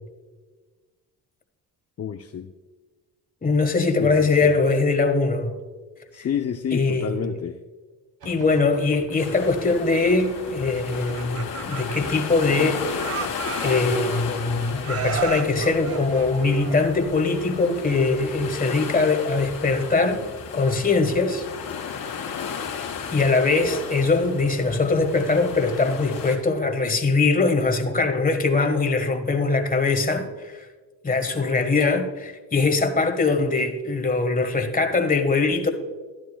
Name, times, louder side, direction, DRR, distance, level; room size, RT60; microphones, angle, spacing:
voice 1, 2.0-2.5 4.0-4.5 6.1-7.6, left 8 dB, 40° left, 0.6 m, -29 dB
voice 2, 3.4-5.6 6.7-7.3 8.2-12.8 13.6-20.3 20.5-21.5 22.1-22.5 23.1-30.6 31.0-35.7, left 3 dB, 20° left, 1.4 m, -22 dB
sound 1, 8.2-17.1, right 2 dB, 70° right, 2.9 m, -45 dB
sound 2, 9.2-26.4, left 6 dB, 85° left, 2.2 m, -34 dB
Laughter, 11.0-12.6 13.0-14.4 14.8-17.1, right 6 dB, 40° right, 0.7 m, -33 dB
12.5 x 10.5 x 2.3 m
cardioid pair, 75°, 37 cm